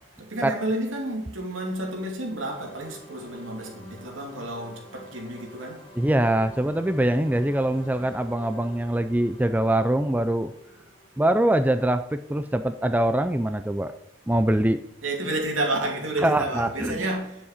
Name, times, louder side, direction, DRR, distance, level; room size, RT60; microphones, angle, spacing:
voice 1, 0.2-5.8 15.0-17.4, right 1 dB, 85° right, 2.7 m, -30 dB
sound 1, 2.4-13.0, left 1 dB, 25° left, 1.8 m, -48 dB
voice 2, 6.0-10.5 11.2-13.9 14.3-14.8 16.2-17.1, right 1 dB, 10° right, 0.3 m, -23 dB
10.0 x 7.3 x 5.0 m
head